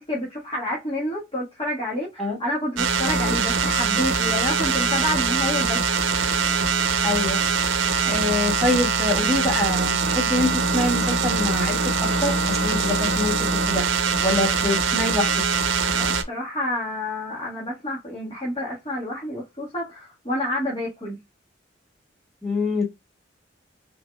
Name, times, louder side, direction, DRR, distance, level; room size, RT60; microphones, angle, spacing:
voice 1, 0.0-5.8 15.9-21.2, left 1 dB, 30° left, 1.5 m, -29 dB
sound 1, 2.8-16.2, right 5 dB, 75° right, 0.8 m, -23 dB
voice 2, 7.0-7.4 8.0-15.4 22.4-22.8, left 2 dB, ahead, 1.9 m, -25 dB
4.1 x 4.0 x 2.3 m
head